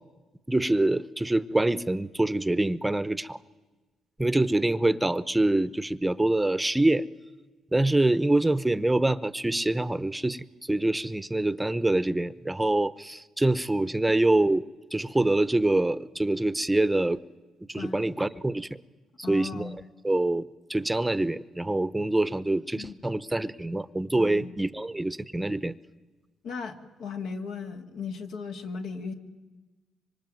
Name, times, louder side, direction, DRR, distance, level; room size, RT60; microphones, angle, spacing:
voice 1, 0.5-3.4 4.2-7.1 7.7-14.6 14.9-17.2 17.7-18.7 19.3-19.7 20.0-20.4 20.7-25.7, right 2 dB, 10° right, 16 dB, 0.8 m, -25 dB
voice 2, 19.2-19.8 22.7-23.0 24.2-24.5 26.4-29.1, left 4 dB, 75° left, 5 dB, 2.5 m, -37 dB
25.5 x 25.0 x 9.3 m, 1.2 s
cardioid pair, 90°, 0 cm